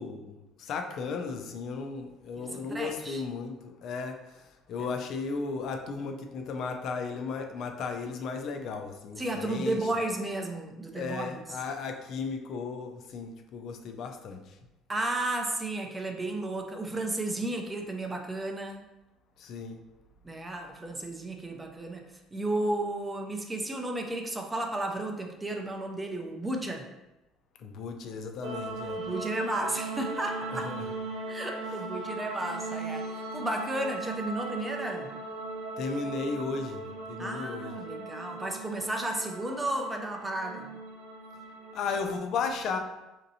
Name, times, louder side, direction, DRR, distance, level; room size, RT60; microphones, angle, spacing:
voice 1, 0.0-9.8 10.9-14.6 19.4-19.8 27.6-29.0 30.5-30.8 35.8-37.8 41.7-42.8, left 4 dB, 55° left, 5 dB, 0.4 m, -35 dB
voice 2, 2.4-3.2 4.8-4.9 9.2-11.6 14.9-18.9 20.2-22.0 22.3-26.9 28.9-30.7 31.3-35.1 37.2-40.7, right 2 dB, 15° right, 3 dB, 0.4 m, -33 dB
sound 1, 28.4-42.2, right 2 dB, 85° right, 0.4 m, -38 dB
5.1 x 2.8 x 2.7 m, 1.0 s
cardioid pair, 135°, 0 cm